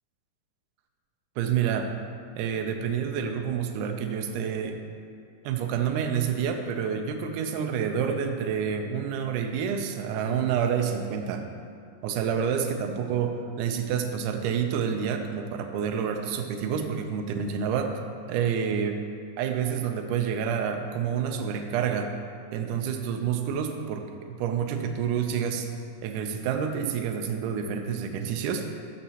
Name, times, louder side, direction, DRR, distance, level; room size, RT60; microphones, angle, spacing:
voice 1, 1.4-2.0 2.4-4.8 5.4-11.5 12.0-18.0 18.3-19.0 19.4-22.1 22.5-25.7 26.0-28.7, right 7 dB, 80° right, 5 dB, 1.9 m, -28 dB
12.5 x 5.8 x 2.9 m, 2.3 s
omnidirectional pair, 4.1 m